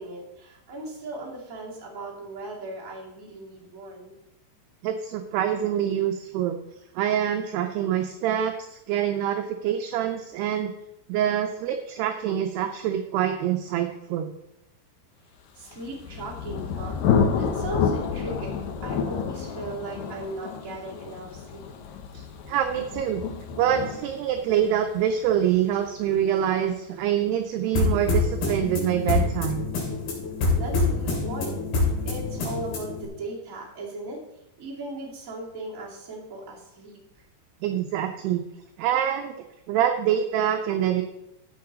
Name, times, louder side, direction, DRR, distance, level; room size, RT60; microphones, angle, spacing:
voice 1, 0.0-4.1 15.5-21.7 30.5-34.2 34.6-37.0, right 2 dB, 25° right, -4 dB, 2.1 m, -38 dB
voice 2, 4.8-6.6 7.0-10.7 11.1-14.3 22.1-23.2 23.6-29.7 37.6-38.4 38.8-39.3 39.7-41.0, right 10 dB, 80° right, 6 dB, 2.4 m, -25 dB
Thunder, 15.7-27.3, left 6 dB, 90° left, 2.0 m, -30 dB
sound 1, 27.7-33.1, left 3 dB, 55° left, 4.4 m, -26 dB
13.5 x 7.5 x 4.0 m, 0.88 s
omnidirectional pair, 5.3 m